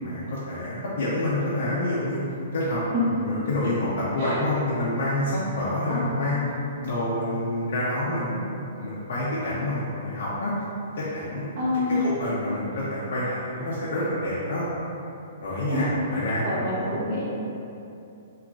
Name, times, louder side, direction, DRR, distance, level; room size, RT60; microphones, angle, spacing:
voice 1, 0.0-2.2 2.5-2.8 3.1-6.4 6.8-10.5 11.0-11.5 11.9-14.6 15.4-16.9, left 1 dB, 55° left, -8 dB, 0.5 m, -28 dB
voice 2, 11.6-12.0 15.7-15.9 16.4-17.2, left 2 dB, 35° right, -8 dB, 0.7 m, -27 dB
2.9 x 2.3 x 2.4 m, 2.7 s
hypercardioid pair, 175°, 0 cm